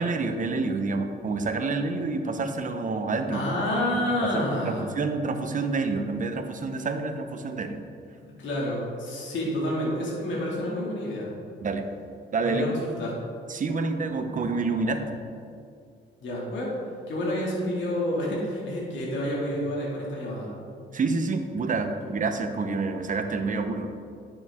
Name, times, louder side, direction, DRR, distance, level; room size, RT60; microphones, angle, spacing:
voice 1, 0.0-3.5 3.9-7.8 11.6-11.9 12.3-12.6 13.5-15.0 20.9-23.9, right 3 dB, 40° right, 7 dB, 0.9 m, -28 dB
voice 2, 3.3-4.9 8.4-11.3 12.4-13.2 16.2-16.7 17.1-20.5, left 1 dB, 70° left, -4 dB, 2.3 m, -29 dB
10.5 x 6.9 x 3.6 m, 2.3 s
cardioid pair, 90°, 20 cm